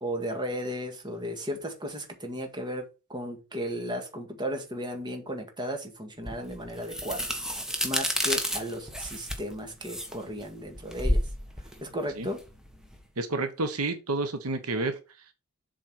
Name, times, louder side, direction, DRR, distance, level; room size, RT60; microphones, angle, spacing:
voice 1, 0.0-7.2 7.8-11.2 11.8-12.4, equal, 20° right, 4 dB, 2.0 m, -35 dB
sound 1, 6.3-13.0, equal, 5° right, 1.4 m, -31 dB
voice 2, 13.2-15.3, right 2 dB, 80° right, 7 dB, 1.2 m, -30 dB
7.6 x 4.5 x 6.0 m, 0.29 s
head